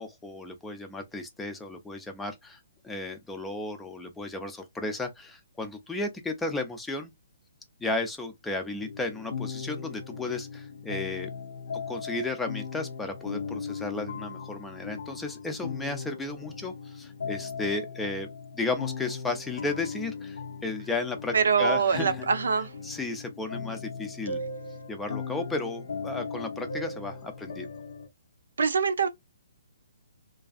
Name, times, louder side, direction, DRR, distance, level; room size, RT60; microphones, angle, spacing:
voice 1, 0.0-7.1 7.8-11.3 11.7-18.3 18.5-22.3 22.8-24.4 24.9-27.7, left 2 dB, 10° left, 0.4 m, -34 dB
sound 1, 8.8-28.1, left 5 dB, 70° left, 0.6 m, -38 dB
voice 2, 21.3-22.7 28.6-29.1, right 6 dB, 70° right, 0.5 m, -24 dB
2.4 x 2.3 x 2.3 m
hypercardioid pair, 140°, 0 cm